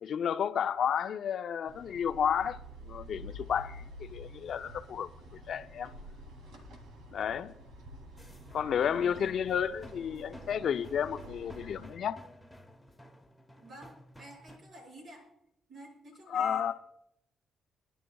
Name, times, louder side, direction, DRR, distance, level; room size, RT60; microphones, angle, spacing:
voice 1, 0.0-2.6 2.9-5.1 5.5-5.9 7.1-7.5 8.5-12.2 16.3-16.7, left 8 dB, 65° left, 0.6 m, -31 dB
sound 1, 1.7-11.9, equal, 90° right, 2.5 m, -49 dB
sound 2, 8.2-14.6, left 1 dB, 5° left, 1.4 m, -53 dB
voice 2, 8.8-9.4 13.6-15.2 15.7-16.6, right 1 dB, 60° right, 6.1 m, -50 dB
23.0 x 11.0 x 2.3 m
cardioid pair, 90°, 0 cm